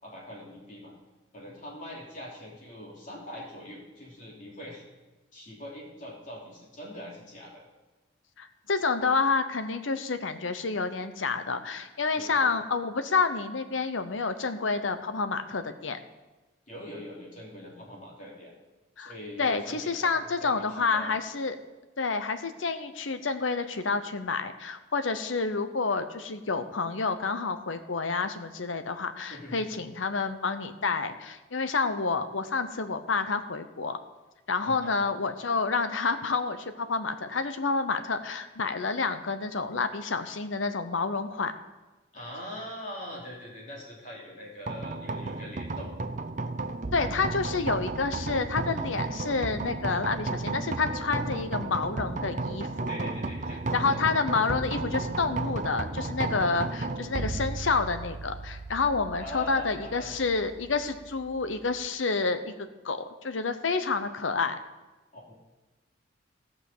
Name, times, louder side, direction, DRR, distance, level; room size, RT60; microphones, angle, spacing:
voice 1, 0.0-0.9 1.3-4.8 5.3-7.6 12.1-12.6 16.7-18.5 19.0-21.1 29.3-29.6 34.6-35.0 42.1-45.9 52.9-54.0 59.2-60.2 65.1-65.3, equal, 40° left, -3 dB, 3.0 m, -43 dB
voice 2, 8.4-16.0 19.0-19.1 19.4-21.6 22.0-34.0 34.5-41.5 46.9-52.9 53.7-62.5 62.8-64.6, left 4 dB, 90° left, 10 dB, 0.9 m, -29 dB
sound 1, 44.7-61.9, right 3 dB, 40° right, 0.6 m, -34 dB
15.0 x 5.8 x 6.7 m, 1.2 s
head